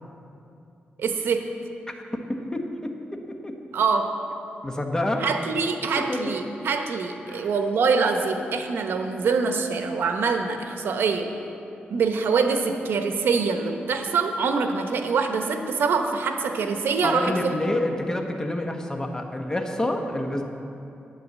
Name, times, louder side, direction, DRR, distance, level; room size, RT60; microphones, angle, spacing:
voice 1, 1.0-1.4 3.7-4.1 5.2-11.3 11.9-17.5, right 5 dB, 85° right, 5 dB, 1.0 m, -24 dB
voice 2, 2.3-3.5 4.6-5.3 5.9-6.2 7.2-7.5 17.0-20.4, left 1 dB, 15° left, 3 dB, 1.3 m, -28 dB
9.5 x 8.9 x 7.4 m, 2.7 s
cardioid pair, 90°, 4 cm